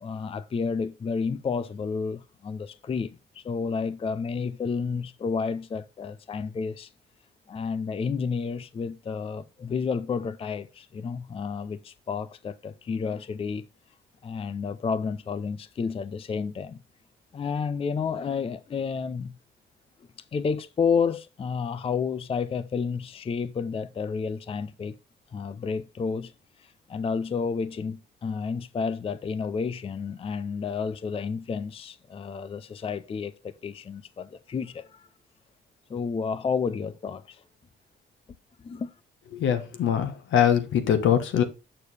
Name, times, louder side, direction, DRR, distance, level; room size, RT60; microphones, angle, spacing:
voice 1, 0.0-6.9 7.5-13.6 14.2-16.8 17.3-19.3 20.3-25.0 25.3-26.3 26.6-35.1 35.9-37.4 38.6-38.9, left 5 dB, 30° left, 0.4 m, -31 dB
voice 2, 39.3-41.4, left 9 dB, 75° left, 1.3 m, -23 dB
6.7 x 6.5 x 3.3 m
cardioid pair, 90°, 20 cm